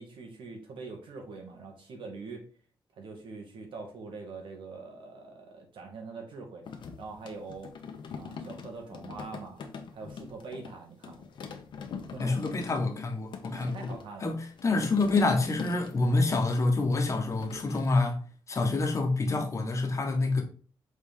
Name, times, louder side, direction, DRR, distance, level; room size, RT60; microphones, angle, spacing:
voice 1, 0.0-2.4 2.9-6.7 7.0-7.7 8.1-9.7 9.9-11.2 12.1-12.5 13.5-14.3, right 4 dB, 75° right, 1.9 m, -43 dB
sound 1, 6.6-10.8 11.0-17.9, left 6 dB, 70° left, 1.1 m, -43 dB
voice 2, 12.2-13.9 14.2-18.2 18.5-20.4, left 3 dB, 35° left, 1.3 m, -27 dB
6.5 x 4.2 x 3.7 m
wide cardioid pair, 135°, 9 cm